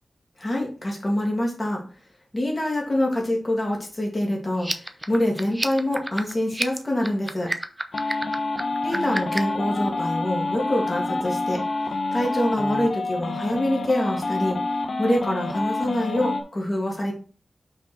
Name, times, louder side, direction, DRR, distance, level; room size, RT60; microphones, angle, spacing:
voice 1, 0.4-1.8 2.3-7.5 8.8-11.6 12.1-14.6 15.0-17.1, left 1 dB, 30° left, -1 dB, 2.4 m, -25 dB
sound 1, 4.5-9.6, right 1 dB, 10° right, 0.7 m, -30 dB
sound 2, 7.9-16.4, left 2 dB, 65° left, 1.1 m, -28 dB
5.8 x 4.8 x 4.5 m, 0.39 s
wide cardioid pair, 100°, 0 cm